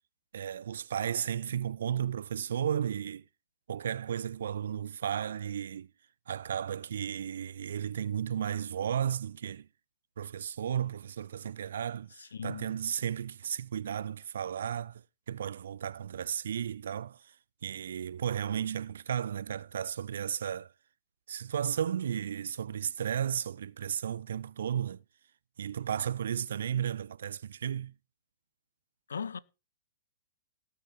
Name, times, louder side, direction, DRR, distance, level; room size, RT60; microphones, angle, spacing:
voice 1, 0.3-3.2 3.7-5.9 6.3-9.7 10.2-17.3 17.6-20.7 21.3-25.0 25.6-28.0, right 9 dB, 65° right, 0.5 m, -34 dB
voice 2, 12.2-12.7 29.1-29.4, left 6 dB, 75° left, 0.9 m, -38 dB
18.0 x 6.9 x 4.8 m
figure-of-eight pair, 110°, 0 cm